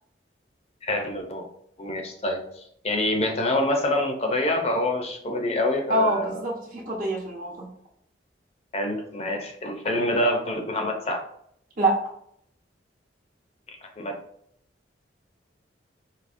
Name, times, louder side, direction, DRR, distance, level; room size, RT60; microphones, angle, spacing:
voice 1, 0.8-1.5 1.8-6.4 8.7-11.2 14.0-14.1, left 1 dB, 35° left, 3 dB, 0.5 m, -26 dB
voice 2, 5.9-7.7 11.8-12.0, right 1 dB, 50° right, -2 dB, 1.0 m, -25 dB
4.9 x 2.8 x 2.5 m, 0.69 s
head